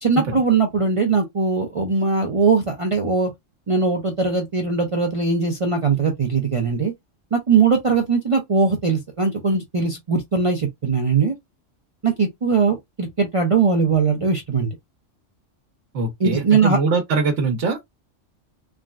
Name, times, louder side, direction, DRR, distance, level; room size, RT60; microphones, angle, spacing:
voice 1, 0.0-3.3 3.7-6.9 7.3-11.3 12.0-14.7 16.2-16.8, right 4 dB, 40° right, 0.4 m, -20 dB
voice 2, 15.9-17.8, right 4 dB, 70° right, 1.2 m, -22 dB
3.5 x 2.1 x 2.4 m
omnidirectional pair, 1.3 m